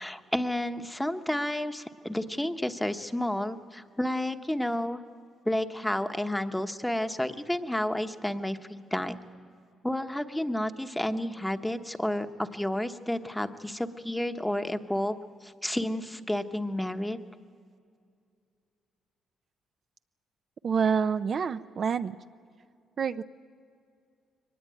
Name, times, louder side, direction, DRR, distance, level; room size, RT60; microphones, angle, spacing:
voice 1, 0.0-5.0 5.4-9.2 9.8-17.2, left 1 dB, 5° left, 8 dB, 1.1 m, -31 dB
voice 2, 20.6-22.2 23.0-23.2, right 6 dB, 50° right, 9 dB, 0.6 m, -27 dB
23.0 x 19.5 x 9.2 m, 2.3 s
cardioid pair, 90°, 0 cm